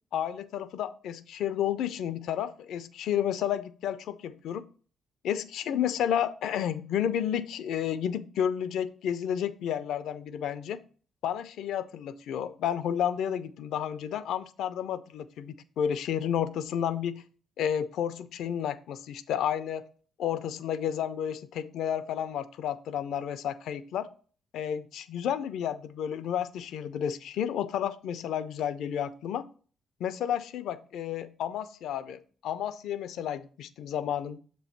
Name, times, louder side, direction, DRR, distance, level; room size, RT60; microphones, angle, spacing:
voice 1, 0.1-4.6 5.2-10.8 11.2-17.2 17.6-19.8 20.2-24.1 24.5-29.4 30.0-34.4, left 9 dB, 80° left, 0.5 m, -31 dB
7.1 x 3.1 x 5.7 m
cardioid pair, 90°, 0 cm